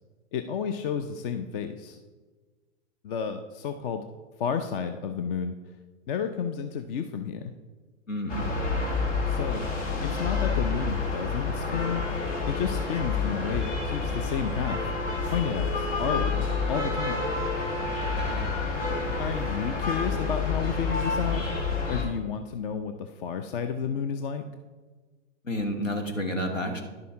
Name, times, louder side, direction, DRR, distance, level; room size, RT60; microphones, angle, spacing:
voice 1, 0.3-2.0 3.0-4.1 4.4-5.6 6.1-7.5 9.3-9.7 10.0-12.0 12.5-14.9 15.3-17.2 19.2-21.4 21.9-24.4, left 7 dB, 45° left, 8 dB, 0.6 m, -31 dB
voice 2, 8.1-8.5 18.0-18.5 25.4-26.8, equal, 85° left, 4 dB, 1.6 m, -31 dB
sound 1, 8.3-22.0, left 4 dB, 70° left, 2.1 m, -29 dB
10.5 x 6.8 x 3.7 m, 1.3 s
figure-of-eight pair, 105°, 38 cm